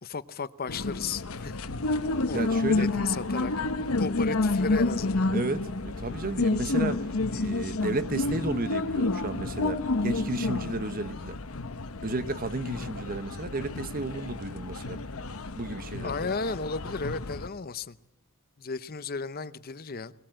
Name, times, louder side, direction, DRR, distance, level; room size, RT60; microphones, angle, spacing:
voice 1, 0.0-1.6 2.3-3.5 4.0-5.3 16.0-18.0 18.6-20.1, left 4 dB, 45° left, 0.7 m, -34 dB
sound 1, 0.7-17.5, left 2 dB, 70° left, 1.0 m, -30 dB
voice 2, 2.3-2.9 5.3-11.4 12.0-15.0 15.5-16.2, right 2 dB, 40° right, 1.0 m, -33 dB
21.0 x 20.5 x 7.6 m
head